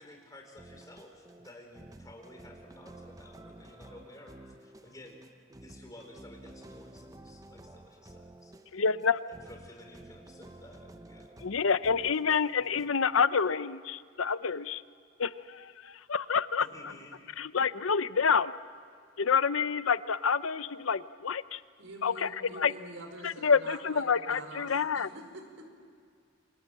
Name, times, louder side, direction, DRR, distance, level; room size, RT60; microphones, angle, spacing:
voice 1, 0.0-5.2 5.6-8.6 9.3-11.4 16.6-17.2, left 1 dB, 20° left, 3 dB, 4.4 m, -53 dB
sound 1, 0.6-12.9, right 1 dB, 15° right, 0.8 m, -52 dB
voice 2, 8.7-9.2 11.4-14.8 15.2-16.9 17.4-18.5 19.2-21.6 22.0-22.3 22.6-22.7 23.2-25.1, left 6 dB, 90° left, 14 dB, 0.7 m, -28 dB
voice 3, 21.8-25.7, right 1 dB, 90° right, 5 dB, 4.9 m, -46 dB
28.5 x 25.5 x 7.7 m, 2.2 s
head